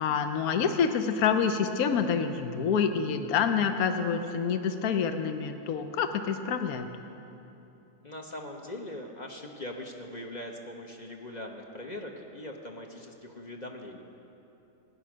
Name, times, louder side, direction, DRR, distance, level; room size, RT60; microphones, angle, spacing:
voice 1, 0.0-6.9, left 6 dB, 75° left, 8 dB, 1.2 m, -27 dB
voice 2, 8.0-14.0, left 1 dB, 30° left, 2 dB, 1.0 m, -41 dB
16.0 x 10.0 x 6.2 m, 2.9 s
omnidirectional pair, 1.6 m